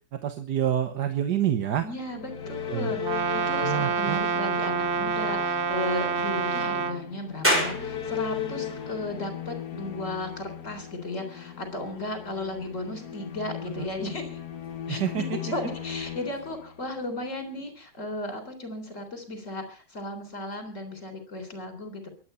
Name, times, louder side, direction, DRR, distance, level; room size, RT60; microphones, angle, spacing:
voice 1, 0.1-1.9 2.7-2.9 3.6-4.2 13.8-13.9 14.9-15.2, right 10 dB, 80° right, 8 dB, 1.7 m, -27 dB
voice 2, 1.8-14.4 14.9-22.1, left 1 dB, 45° left, 7 dB, 4.0 m, -35 dB
sound 1, 1.9-17.1, left 8 dB, 70° left, 1.8 m, -37 dB
Brass instrument, 3.0-7.0, right 6 dB, 45° right, 0.9 m, -27 dB
sound 2, 7.4-20.6, equal, 5° right, 5.7 m, -37 dB
23.0 x 9.2 x 5.5 m, 0.41 s
omnidirectional pair, 1.8 m